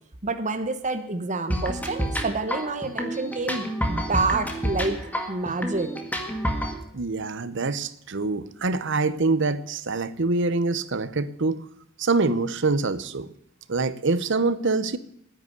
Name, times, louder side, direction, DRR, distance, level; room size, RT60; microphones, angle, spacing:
voice 1, 0.2-5.0 5.3-5.9, right 3 dB, 35° right, 7 dB, 1.1 m, -28 dB
sound 1, 1.5-6.8, equal, 10° left, 1.8 m, -29 dB
voice 2, 6.9-11.6 12.0-13.3 13.7-15.0, right 3 dB, 65° right, 15 dB, 0.9 m, -25 dB
10.0 x 10.0 x 7.9 m, 0.70 s
head